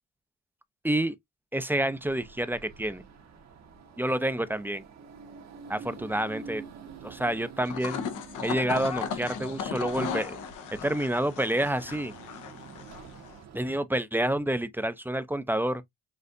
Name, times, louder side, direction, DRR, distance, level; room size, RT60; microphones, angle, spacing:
voice 1, 0.8-1.2 1.5-3.0 4.0-4.8 5.7-6.6 7.0-8.0 8.4-10.4 10.8-12.1 13.5-15.8, right 1 dB, 5° right, 0.5 m, -28 dB
sound 1, 1.9-13.7, right 6 dB, 60° right, 1.3 m, -48 dB
sound 2, 7.6-13.4, left 6 dB, 80° left, 0.9 m, -36 dB
6.5 x 2.5 x 2.6 m
cardioid pair, 90°, 30 cm